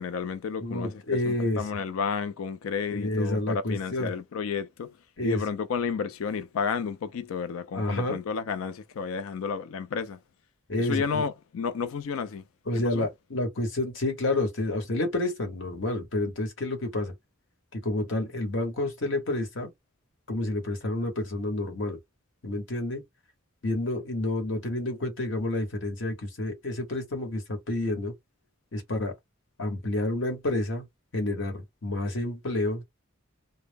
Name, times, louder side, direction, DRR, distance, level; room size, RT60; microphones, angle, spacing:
voice 1, 0.0-5.0 5.2-10.2 10.8-12.4 12.7-13.1, left 6 dB, 80° left, 0.4 m, -31 dB
voice 2, 0.6-1.6 2.9-4.1 5.2-5.4 7.7-8.2 10.7-11.2 12.7-17.1 17.7-19.7 20.3-22.0 22.4-23.0 23.6-28.1 28.7-29.1 29.6-30.9 31.1-32.8, left 2 dB, 65° left, 1.0 m, -29 dB
2.1 x 2.1 x 3.3 m
head